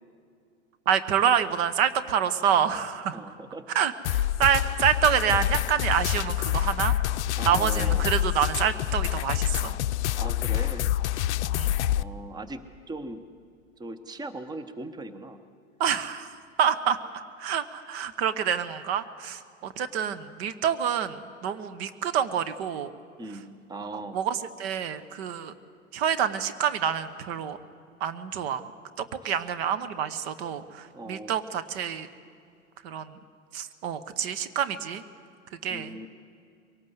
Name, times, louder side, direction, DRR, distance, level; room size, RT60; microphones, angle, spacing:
voice 1, 0.9-3.2 3.7-6.9 7.5-9.8 11.5-11.7 15.8-16.3 16.6-17.0 17.4-22.9 23.9-25.5 25.9-27.6 28.0-28.7 29.0-32.1 32.8-33.1 33.5-35.0 35.6-36.0, right 8 dB, 50° right, 11 dB, 1.1 m, -27 dB
voice 2, 3.1-3.7 7.3-8.1 10.2-10.9 11.9-12.6 12.9-13.2 13.8-15.4 23.2-24.2 29.2-29.4 30.9-31.3 35.7-36.1, right 2 dB, 10° right, 12 dB, 1.0 m, -39 dB
sound 1, 4.0-12.0, left 13 dB, 60° left, 0.6 m, -27 dB
22.5 x 18.5 x 8.1 m, 2.4 s
figure-of-eight pair, 90°, 39 cm